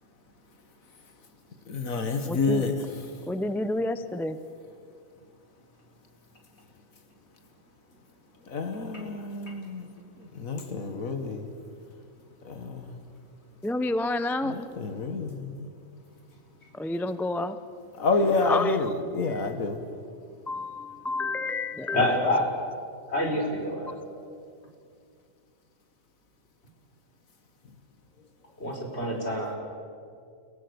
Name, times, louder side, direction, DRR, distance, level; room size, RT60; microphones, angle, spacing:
voice 1, 1.7-2.8 8.5-9.9 10.2-11.5 12.5-12.9 14.5-15.7 18.0-19.8, left 3 dB, 85° left, 6 dB, 2.1 m, -29 dB
voice 2, 2.3-2.7 3.3-4.4 13.6-14.5 16.7-17.6 18.4-18.8 19.2-19.5 20.5-22.2, left 2 dB, ahead, 11 dB, 0.6 m, -29 dB
voice 3, 21.9-22.5 23.1-23.9 28.6-29.6, left 1 dB, 50° left, 0 dB, 4.9 m, -27 dB
30.0 x 18.0 x 8.1 m, 2.3 s
omnidirectional pair, 1.4 m